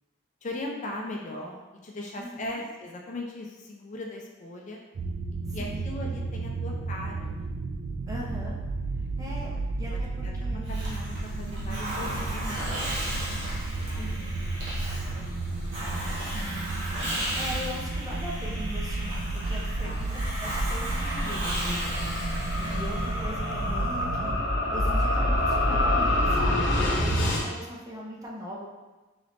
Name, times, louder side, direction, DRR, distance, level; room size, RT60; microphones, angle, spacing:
voice 1, 0.4-1.6 1.8-4.8 5.5-7.6 8.1-8.2 9.4-9.6 9.9-14.2 14.7-16.2 19.8-20.1 24.6-24.8, left 1 dB, 40° left, 0 dB, 0.5 m, -40 dB
voice 2, 2.2-2.6 5.5-5.9 8.1-8.6 9.2-10.7 14.0-14.4 16.3-16.7 17.3-28.7, equal, 20° right, -4 dB, 0.7 m, -40 dB
sound 1, 4.9-24.4, right 3 dB, 70° right, 0.4 m, -33 dB
Hiss, 10.6-24.1, equal, 85° right, 1.3 m, -34 dB
sound 2, 19.6-27.4, left 1 dB, 90° left, 0.7 m, -27 dB
3.9 x 3.2 x 3.0 m, 1.2 s
head